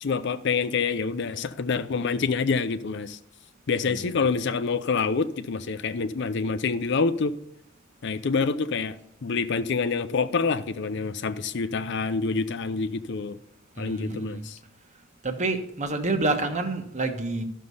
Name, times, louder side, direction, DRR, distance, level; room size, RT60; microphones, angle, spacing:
voice 1, 0.0-3.2 3.7-7.3 8.0-9.0 9.2-13.4 13.8-14.6, left 4 dB, 60° left, 0.5 m, -27 dB
voice 2, 13.8-14.4 15.2-17.4, right 2 dB, 35° right, 1.3 m, -28 dB
13.0 x 6.5 x 5.5 m
head